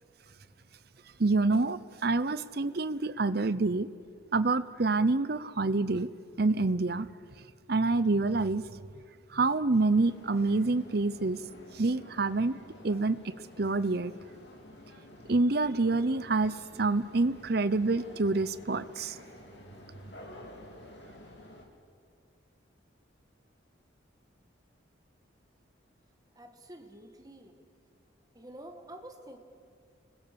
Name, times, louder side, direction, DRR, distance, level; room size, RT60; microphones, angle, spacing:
voice 1, 1.2-3.9 4.3-6.1 6.4-7.1 7.7-8.6 9.3-11.4 11.8-12.5 12.8-13.2 13.6-14.1 15.3-19.1, right 3 dB, 50° right, 15 dB, 0.7 m, -27 dB
sound 1, 9.9-21.7, left 1 dB, 60° left, 3.3 m, -51 dB
voice 2, 26.4-27.5 28.4-29.4, right 1 dB, 20° right, 4 dB, 2.0 m, -48 dB
29.5 x 20.5 x 7.0 m, 2.3 s
head